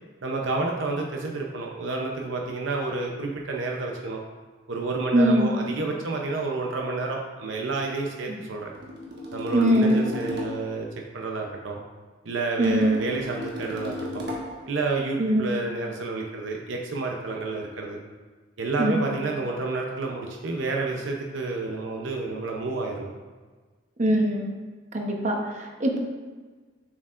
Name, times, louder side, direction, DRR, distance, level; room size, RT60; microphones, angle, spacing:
voice 1, 0.2-4.2 4.7-8.7 9.3-10.9 11.1-11.8 12.2-14.2 14.7-18.0 18.6-23.1, right 3 dB, 75° right, 0 dB, 0.6 m, -30 dB
voice 2, 5.1-5.5 8.3-8.4 9.5-10.0 12.6-13.0 15.2-15.5 18.8-19.1 24.0-24.5 24.9-26.0, equal, 40° right, 1 dB, 0.8 m, -22 dB
sound 1, 8.7-10.8 12.6-14.7, left 1 dB, 55° right, 1.2 m, -35 dB
7.3 x 6.4 x 2.5 m, 1.4 s
head